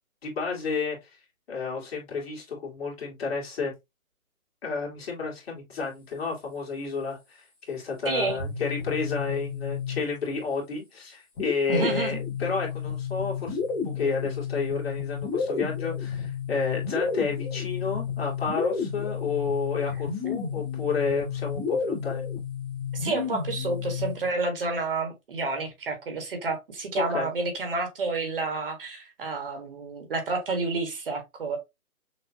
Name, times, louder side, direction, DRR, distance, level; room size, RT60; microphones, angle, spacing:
voice 1, 0.2-1.1 1.5-3.7 4.6-22.3 27.0-27.3, left 4 dB, 45° left, 2.2 m, -31 dB
voice 2, 8.0-8.4 11.7-12.2 22.9-31.6, right 3 dB, 40° right, 1.3 m, -29 dB
sound 1, 8.3-10.4 11.4-24.3, left 6 dB, 10° left, 0.8 m, -31 dB
6.1 x 2.5 x 2.7 m
figure-of-eight pair, 155°, 43 cm